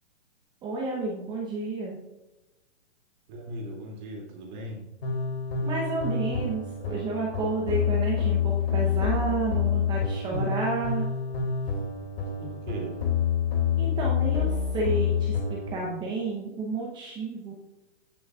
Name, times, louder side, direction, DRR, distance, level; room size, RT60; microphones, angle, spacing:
voice 1, 0.6-2.0 5.6-11.1 13.8-17.5, right 3 dB, 15° right, -2 dB, 0.8 m, -31 dB
voice 2, 3.3-4.8 10.3-10.7 12.2-13.0, right 1 dB, 40° right, -1 dB, 2.4 m, -38 dB
sound 1, 5.0-15.7, left 7 dB, 55° left, 2.5 m, -27 dB
16.0 x 6.3 x 2.4 m, 1.0 s
hypercardioid pair, 145°, 36 cm